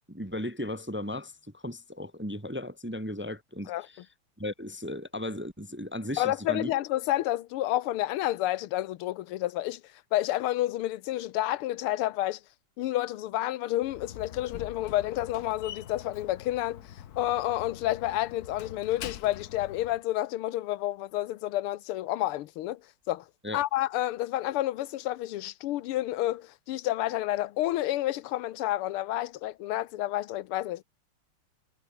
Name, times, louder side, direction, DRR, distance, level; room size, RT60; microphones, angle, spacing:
voice 1, 0.1-4.1 4.4-6.7 23.4-23.6, left 1 dB, 5° right, 1.0 m, -36 dB
voice 2, 6.2-9.8 10.1-12.4 12.8-16.8 17.2-22.8 23.1-23.3 23.5-30.8, left 15 dB, 90° left, 1.7 m, -30 dB
Slam, 13.8-20.0, left 10 dB, 55° left, 1.2 m, -44 dB
omnidirectional pair, 2.4 m